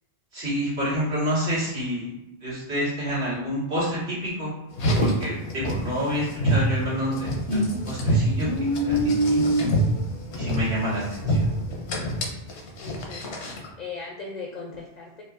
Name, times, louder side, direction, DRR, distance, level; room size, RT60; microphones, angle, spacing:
voice 1, 0.3-2.1 2.4-4.5 5.0-9.5 10.3-11.5, equal, 90° right, -9 dB, 1.8 m, -28 dB
Car, 4.7-13.7, right 1 dB, 90° left, 1.0 m, -25 dB
voice 2, 11.6-11.9 12.8-15.2, left 4 dB, 55° left, -1 dB, 0.5 m, -39 dB
4.6 x 2.2 x 2.4 m, 0.94 s
omnidirectional pair, 1.1 m